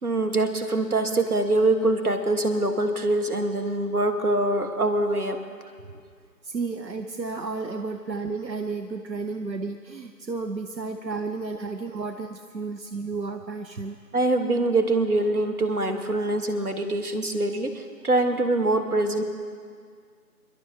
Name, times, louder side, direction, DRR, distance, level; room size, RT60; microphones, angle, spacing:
voice 1, 0.0-5.4 14.1-19.2, right 2 dB, 60° right, 7 dB, 1.4 m, -24 dB
voice 2, 6.4-14.0, right 4 dB, 85° right, 6 dB, 0.9 m, -32 dB
29.0 x 11.5 x 2.8 m, 2.1 s
figure-of-eight pair, 160°, 50 cm